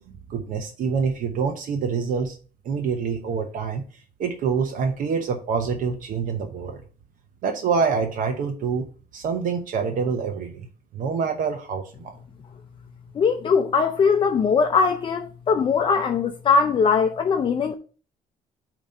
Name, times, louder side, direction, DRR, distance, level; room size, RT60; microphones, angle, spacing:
voice 1, 0.1-2.4 2.6-3.8 4.2-6.8 7.4-8.8 9.1-10.7 10.9-12.1, right 5 dB, 70° right, 0.9 m, -26 dB
voice 2, 13.1-17.7, left 5 dB, 35° left, 0.5 m, -21 dB
8.7 x 3.0 x 5.3 m
cardioid pair, 135°, 15 cm